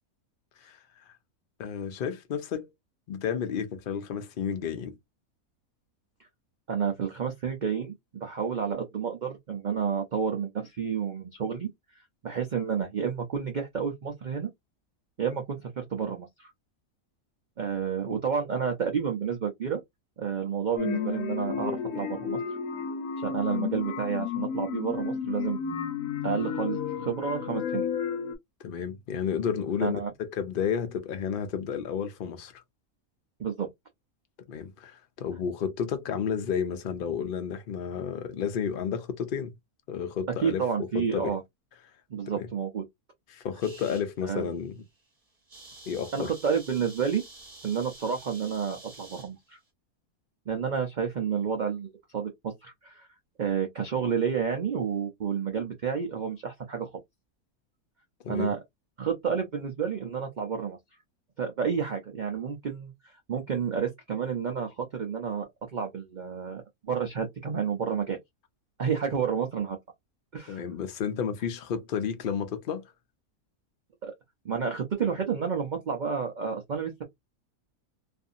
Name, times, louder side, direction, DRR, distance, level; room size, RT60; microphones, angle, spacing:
voice 1, 1.6-2.7 3.1-5.0 28.6-32.5 34.5-39.5 39.9-40.6 40.9-41.3 42.3-42.5 43.3-44.8 45.9-46.3 58.2-58.5 70.5-72.8, left 7 dB, 70° left, 0.5 m, -31 dB
voice 2, 6.7-7.9 8.2-11.7 12.2-14.5 15.2-16.5 17.6-19.8 20.2-22.4 23.2-25.8 26.2-27.9 29.8-30.1 33.4-33.7 40.4-41.4 42.1-42.8 44.2-44.5 46.1-47.2 47.6-49.6 50.5-53.1 53.4-56.9 58.3-58.6 59.0-60.8 61.4-68.2 68.8-69.8 70.3-70.6 74.0-74.1 74.4-77.0, right 7 dB, 85° right, 0.4 m, -30 dB
sound 1, 20.8-28.4, left 7 dB, 85° left, 1.1 m, -32 dB
sound 2, 43.6-44.1 44.6-44.8 45.1-45.2 45.3-49.3, right 2 dB, 30° right, 0.8 m, -48 dB
2.6 x 2.5 x 2.5 m
omnidirectional pair, 1.6 m